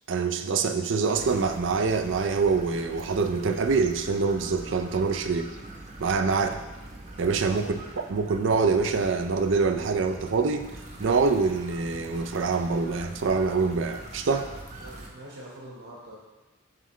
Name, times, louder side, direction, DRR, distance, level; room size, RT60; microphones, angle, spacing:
voice 1, 0.1-5.5 6.0-6.5 7.2-7.7 8.1-10.7 11.0-14.5, right 4 dB, 65° right, 7 dB, 0.5 m, -25 dB
sound 1, 1.1-15.1, right 1 dB, 40° right, 0.9 m, -43 dB
voice 2, 14.8-16.2, right 1 dB, 80° right, -5 dB, 1.5 m, -45 dB
7.6 x 5.5 x 3.2 m, 1.1 s
head